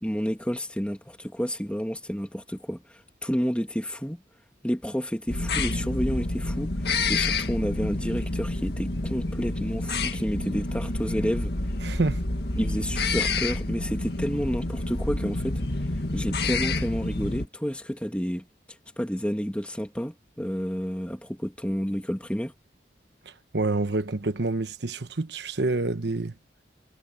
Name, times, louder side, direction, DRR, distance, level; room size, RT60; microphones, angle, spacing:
voice 1, 0.0-2.8 3.2-4.2 4.6-6.7 7.1-11.5 12.6-15.6 16.1-18.5 19.0-22.5, equal, 5° left, 2.1 m, -30 dB
sound 1, 5.3-17.5, left 2 dB, 70° left, 1.9 m, -28 dB
voice 2, 11.8-12.2 23.5-26.3, right 2 dB, 80° right, 1.1 m, -27 dB
head